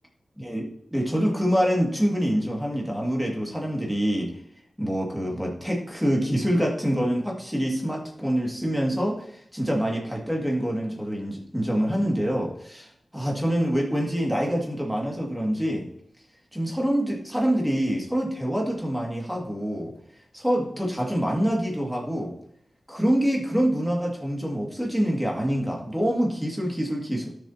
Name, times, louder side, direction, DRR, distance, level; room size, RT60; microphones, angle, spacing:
voice 1, 0.4-4.3 4.8-15.9 16.5-19.9 20.3-22.4 22.9-27.3, equal, 5° right, -2 dB, 2.2 m, -26 dB
12.0 x 7.0 x 2.9 m, 0.67 s
wide cardioid pair, 140°, 0 cm